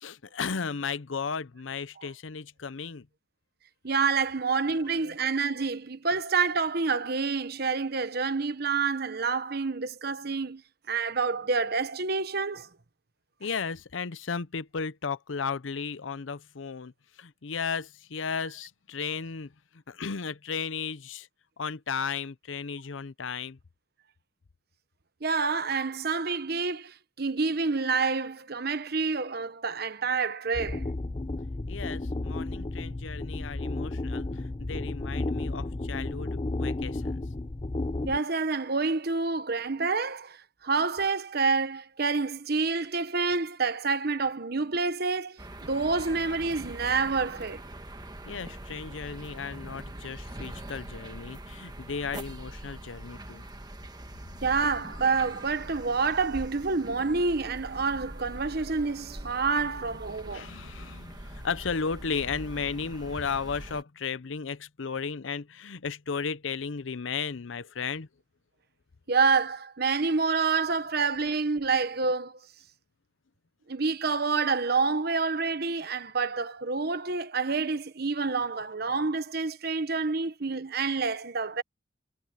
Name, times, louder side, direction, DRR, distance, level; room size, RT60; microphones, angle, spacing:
voice 1, 0.0-3.1 4.7-5.2 13.4-21.3 21.6-23.6 31.7-37.2 48.3-53.4 60.2-68.1, left 5 dB, 90° left, 0.7 m, -35 dB
voice 2, 3.8-10.6 10.9-12.7 25.2-30.9 38.1-47.6 54.4-60.5 69.1-72.4 73.7-81.6, right 4 dB, 55° right, 1.1 m, -28 dB
sound 1, 30.5-38.2, left 2 dB, 30° left, 0.6 m, -33 dB
sound 2, 45.4-63.8, right 1 dB, 20° right, 1.5 m, -43 dB
head